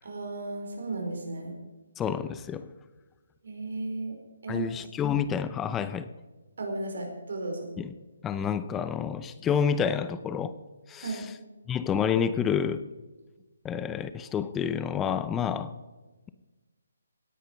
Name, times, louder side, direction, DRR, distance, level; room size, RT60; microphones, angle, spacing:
voice 1, 0.0-1.5 3.4-4.1 4.4-4.9 6.6-7.7 11.0-11.2, right 2 dB, 65° right, 2 dB, 4.6 m, -34 dB
voice 2, 2.0-2.7 4.5-6.1 7.8-7.9 8.2-10.5 10.9-11.3 11.7-12.8 13.6-15.7, left 7 dB, 10° left, 13 dB, 0.6 m, -29 dB
18.0 x 10.0 x 5.2 m, 1.2 s
figure-of-eight pair, 150°, 0 cm